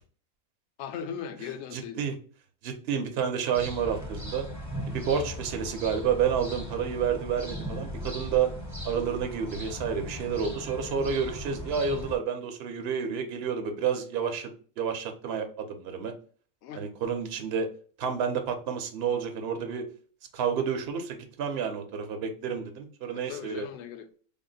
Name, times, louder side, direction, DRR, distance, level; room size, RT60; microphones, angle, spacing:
voice 1, 0.8-2.1 16.6-16.8 23.1-24.2, left 8 dB, 60° left, 0.8 m, -39 dB
voice 2, 1.7-2.1 2.6-4.5 4.9-8.5 8.8-14.5 14.8-16.1 16.8-17.7 18.0-19.8 20.3-23.7, right 7 dB, 55° right, 0.8 m, -30 dB
sound 1, 3.5-12.2, equal, 15° right, 0.6 m, -38 dB
3.6 x 2.1 x 3.9 m
omnidirectional pair, 1.5 m